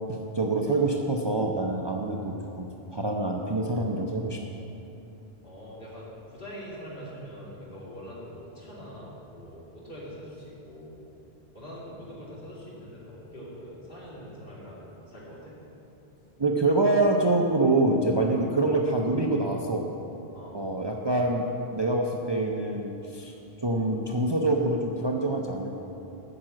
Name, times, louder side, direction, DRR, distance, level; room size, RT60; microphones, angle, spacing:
voice 1, 0.1-4.6 16.4-19.9 20.5-23.3 23.6-25.7, right 2 dB, 35° right, 0 dB, 0.5 m, -26 dB
voice 2, 5.4-11.0 11.5-15.6 20.3-20.6, equal, 60° left, -7 dB, 2.9 m, -43 dB
8.9 x 5.9 x 7.7 m, 3.0 s
omnidirectional pair, 1.0 m